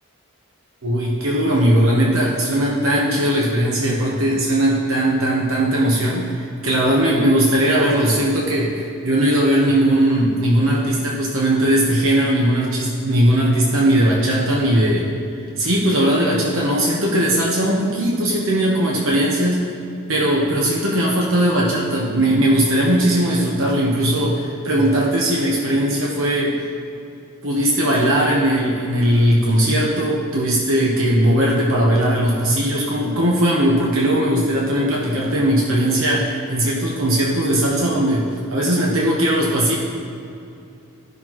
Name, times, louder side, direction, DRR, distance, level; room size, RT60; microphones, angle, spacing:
voice 1, 0.8-15.1 15.6-19.7 20.1-26.5 27.4-38.2 38.5-39.8, right 1 dB, 65° right, -4 dB, 1.1 m, -18 dB
14.5 x 6.0 x 3.0 m, 2.6 s
head